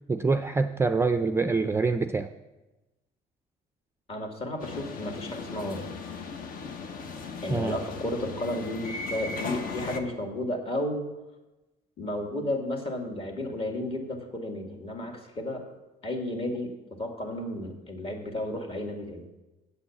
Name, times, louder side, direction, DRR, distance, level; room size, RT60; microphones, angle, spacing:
voice 1, 0.1-2.3 7.5-7.8, right 4 dB, 15° right, 8 dB, 0.4 m, -25 dB
voice 2, 4.1-5.9 7.4-11.1 12.0-15.6 16.0-16.7 17.0-19.2, left 1 dB, 35° left, 3 dB, 2.1 m, -33 dB
sound 1, 4.6-10.0, left 4 dB, 55° left, 1.0 m, -37 dB
8.3 x 8.2 x 7.1 m, 1.0 s
cardioid pair, 110°, 17 cm